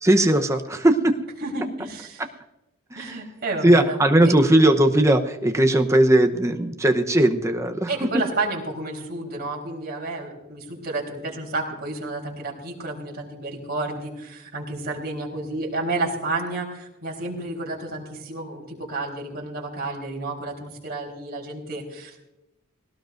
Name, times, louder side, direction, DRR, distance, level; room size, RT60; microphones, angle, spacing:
voice 1, 0.0-1.2 2.9-3.2 3.6-8.1, right 1 dB, 15° right, 5 dB, 0.9 m, -18 dB
voice 2, 1.4-2.2 3.0-4.0 7.9-22.2, right 2 dB, 45° right, -1 dB, 4.0 m, -31 dB
20.0 x 18.0 x 2.6 m, 0.96 s
head